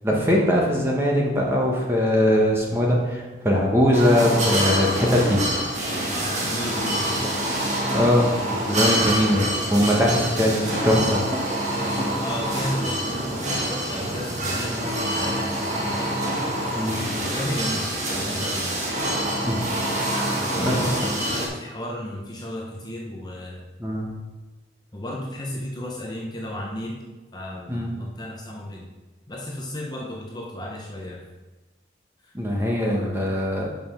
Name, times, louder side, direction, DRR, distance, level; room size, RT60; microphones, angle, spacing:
voice 1, 0.0-5.4 7.9-8.3 8.7-11.2 14.7-14.8 16.8-17.0 19.4-19.7 20.6-20.8 23.8-24.1 27.7-27.9 32.3-33.7, equal, 15° right, -2 dB, 1.2 m, -21 dB
sound 1, 3.9-21.5, right 1 dB, 40° right, 1.4 m, -26 dB
voice 2, 6.1-7.4 8.2-9.1 10.0-10.6 11.7-16.1 16.9-17.9 18.2-18.8 20.3-23.6 24.9-27.0 27.3-28.9 29.3-31.3 32.2-32.3, left 1 dB, 20° left, -2 dB, 0.8 m, -34 dB
5.5 x 5.3 x 5.8 m, 1.2 s
head